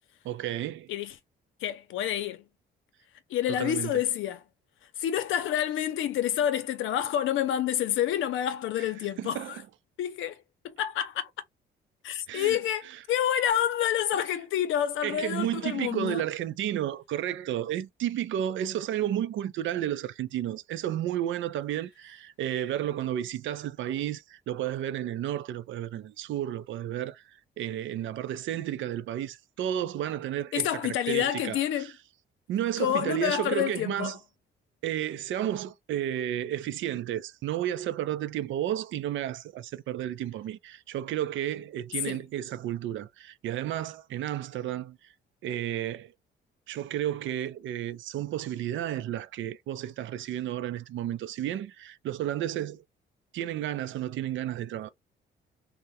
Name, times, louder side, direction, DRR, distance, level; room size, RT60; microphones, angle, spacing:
voice 1, 0.2-0.9 3.5-4.0 8.8-8.9 9.2-9.6 12.3-12.6 15.0-31.9 32.5-34.2 34.8-45.0 45.4-46.1 46.7-52.8 53.3-54.9, right 11 dB, 75° right, 0.5 m, -32 dB
voice 2, 1.6-2.4 3.3-4.4 5.0-9.6 10.0-11.3 12.0-16.2 30.5-31.9 32.8-34.1 42.1-42.2, left 10 dB, 80° left, 0.6 m, -28 dB
3.6 x 2.1 x 2.7 m
cardioid pair, 90°, 20 cm